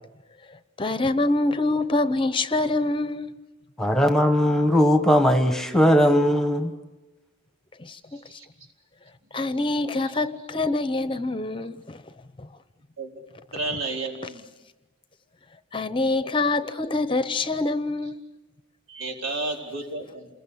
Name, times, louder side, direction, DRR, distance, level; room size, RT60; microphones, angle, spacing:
voice 1, 0.8-3.3 7.8-8.0 8.3-8.4 9.3-12.0 12.4-12.5 15.7-18.2, left 2 dB, 25° left, 0.8 m, -25 dB
voice 2, 3.8-6.7, equal, ahead, 1.2 m, -19 dB
voice 3, 9.3-9.6 13.0-13.2 13.5-14.4 18.9-20.3, right 2 dB, 80° right, 4.6 m, -32 dB
28.5 x 21.5 x 8.5 m
head